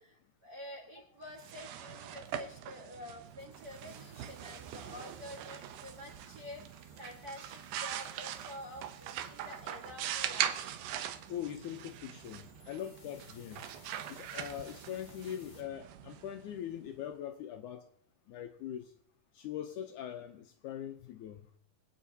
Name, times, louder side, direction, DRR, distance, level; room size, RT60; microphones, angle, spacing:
voice 1, 0.0-10.6, left 1 dB, 40° right, -3 dB, 1.4 m, -48 dB
sound 1, 1.3-16.9, right 10 dB, 75° right, 2.1 m, -42 dB
sound 2, 3.4-15.6, left 4 dB, 40° left, 1.6 m, -63 dB
voice 2, 11.3-13.6 14.1-17.9 18.3-18.9 19.3-21.4, left 10 dB, 75° left, 6 dB, 1.9 m, -42 dB
24.5 x 8.9 x 2.8 m, 0.62 s
omnidirectional pair, 4.0 m